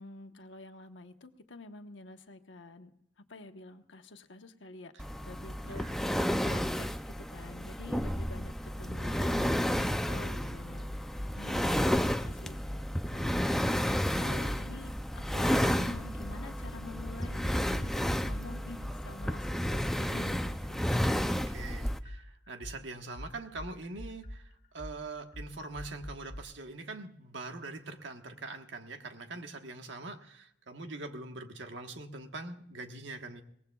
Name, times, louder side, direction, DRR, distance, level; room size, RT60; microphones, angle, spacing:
voice 1, 0.0-2.9 3.2-4.9 5.2-6.2 6.4-10.9 11.4-12.6 13.1-13.8 14.1-21.2, left 2 dB, 90° left, 6 dB, 1.1 m, -48 dB
sound 1, 5.0-22.0, equal, ahead, 0.4 m, -32 dB
voice 2, 5.6-6.0 21.0-33.4, right 3 dB, 80° right, 6 dB, 1.3 m, -43 dB
sound 2, 9.0-9.1 9.5-9.7 10.1-11.3 11.7-11.9 12.2-13.5 13.9-14.1 14.4-15.7 16.1-20.1 20.4-26.4, equal, 50° left, 2.2 m, -44 dB
22.5 x 18.5 x 2.3 m, 0.75 s
head